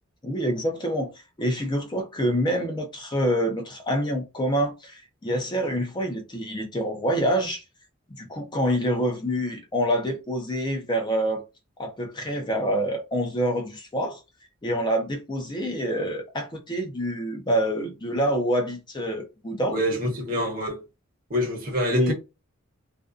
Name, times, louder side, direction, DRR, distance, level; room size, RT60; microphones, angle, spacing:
voice 1, 0.2-1.1 1.4-7.6 8.1-11.4 11.8-14.2 14.6-19.8 21.9-22.1, equal, 20° left, 0.5 m, -26 dB
voice 2, 19.7-20.8 21.3-22.1, left 1 dB, 45° right, 0.9 m, -26 dB
2.5 x 2.2 x 2.4 m
head